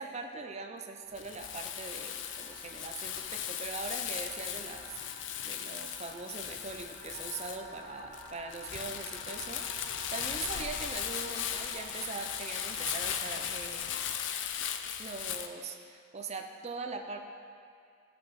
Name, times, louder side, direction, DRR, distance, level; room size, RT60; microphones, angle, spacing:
voice 1, 0.0-14.1 15.0-17.2, right 3 dB, 35° right, 4 dB, 0.5 m, -42 dB
Crumpling crinkling, 1.1-15.5, left 9 dB, 70° left, 0.5 m, -37 dB
sound 1, 1.2-13.8, equal, 50° left, 2.1 m, -51 dB
13.0 x 5.9 x 3.1 m, 2.4 s
head